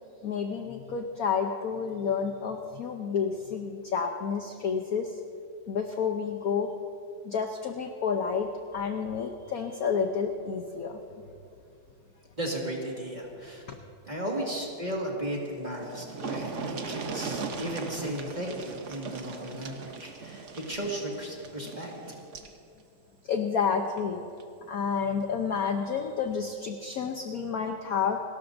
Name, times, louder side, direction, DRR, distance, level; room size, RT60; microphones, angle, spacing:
voice 1, 0.2-5.2 5.7-6.7 7.2-11.0 23.3-24.2 24.7-28.2, left 6 dB, 60° left, 5 dB, 0.9 m, -30 dB
voice 2, 12.4-13.7 14.1-21.9, right 1 dB, 20° right, -2 dB, 1.8 m, -35 dB
sound 1, 15.4-15.5 15.7-22.6 23.9-24.0 24.4-24.5, right 4 dB, 50° right, 0.9 m, -38 dB
29.5 x 13.0 x 2.6 m, 2.4 s
omnidirectional pair, 2.3 m